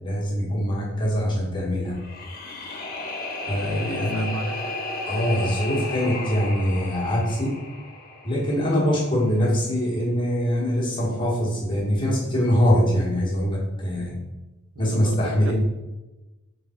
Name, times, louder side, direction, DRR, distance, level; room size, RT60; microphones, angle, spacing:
voice 1, 0.0-2.0 3.5-4.3 5.1-7.6 8.2-14.2 14.8-15.5, equal, 25° left, -5 dB, 1.2 m, -23 dB
sound 1, 1.9-9.0, left 2 dB, 45° left, 0.7 m, -34 dB
voice 2, 3.5-4.8 14.7-15.5, right 4 dB, 75° right, 8 dB, 0.4 m, -38 dB
3.5 x 3.4 x 4.3 m, 1.1 s
head